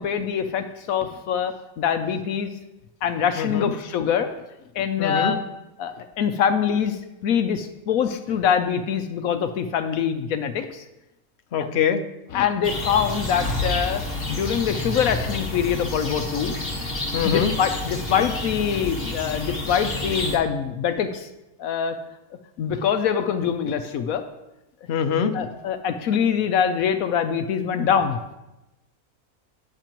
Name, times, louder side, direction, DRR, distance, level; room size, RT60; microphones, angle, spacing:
voice 1, 0.0-2.5 3.0-4.3 4.7-5.4 5.8-10.8 12.3-14.0 14.3-16.6 17.2-21.3 21.6-22.0 22.6-24.2 25.3-28.2, left 7 dB, 80° left, 8 dB, 1.1 m, -24 dB
voice 2, 3.4-3.7 5.0-5.4 11.5-12.0 17.1-17.5 24.9-25.4, left 7 dB, 55° left, 7 dB, 0.9 m, -23 dB
sound 1, 12.6-20.4, left 2 dB, 30° left, 1.5 m, -29 dB
19.0 x 6.7 x 3.0 m, 0.95 s
omnidirectional pair, 1.5 m